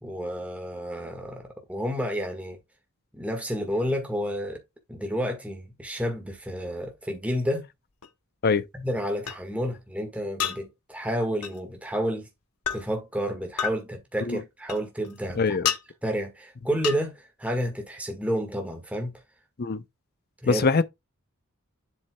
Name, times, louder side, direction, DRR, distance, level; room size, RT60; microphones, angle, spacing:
voice 1, 0.0-2.6 3.1-4.6 4.9-7.7 8.8-12.3 12.7-15.6 16.0-19.1 20.4-20.7, equal, 5° right, 1.5 m, -30 dB
sound 1, 8.0-8.1 9.3-9.4 10.4-10.6 11.4-11.6 12.6-12.8 13.6-13.8 14.7-15.2 15.6-15.8 16.8-17.0, left 9 dB, 90° left, 0.9 m, -28 dB
voice 2, 15.3-15.7 19.6-19.8 20.5-20.8, left 4 dB, 45° left, 0.6 m, -23 dB
7.7 x 7.1 x 2.2 m
head